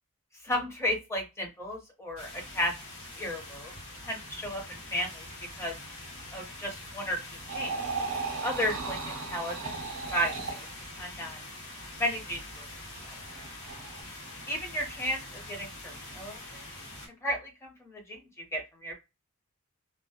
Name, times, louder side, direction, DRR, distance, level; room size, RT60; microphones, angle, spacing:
voice 1, 0.4-2.7 3.2-3.7 4.0-5.3 5.6-5.7 6.3-7.2 7.5-7.7 8.4-9.7 10.1-10.7 11.0-11.4 12.0-12.6 13.0-13.1 14.5-16.6 17.2-18.2 18.5-18.9, equal, 10° left, 1 dB, 0.7 m, -33 dB
sound 1, 2.2-17.1, left 1 dB, 80° left, 1.1 m, -44 dB
sound 2, 7.5-10.7 13.3-14.0, right 4 dB, 80° right, 0.6 m, -36 dB
2.2 x 2.0 x 2.7 m, 0.24 s
head